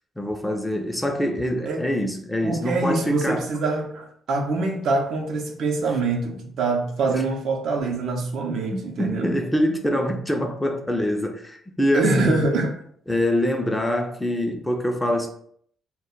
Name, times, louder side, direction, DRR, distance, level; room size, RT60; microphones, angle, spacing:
voice 1, 0.2-3.5 7.1-7.2 8.7-12.4 13.1-15.3, left 1 dB, 10° left, 3 dB, 0.4 m, -25 dB
voice 2, 2.4-9.3 11.9-12.7, right 3 dB, 70° right, 2 dB, 0.6 m, -24 dB
2.2 x 2.1 x 3.8 m, 0.62 s
cardioid pair, 90°, 0 cm